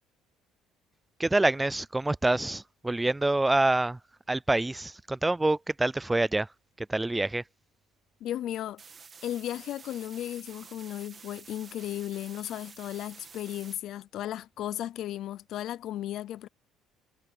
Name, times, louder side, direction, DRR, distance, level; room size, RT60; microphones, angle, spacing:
voice 1, 1.2-4.0 4.3-6.5 6.8-7.4, right 2 dB, 10° right, 0.4 m, -26 dB
voice 2, 8.2-8.8 9.2-16.5, left 12 dB, 50° left, 0.5 m, -35 dB
sound 1, 8.8-13.8, right 6 dB, 25° right, 1.8 m, -50 dB
cardioid pair, 160°, 0 cm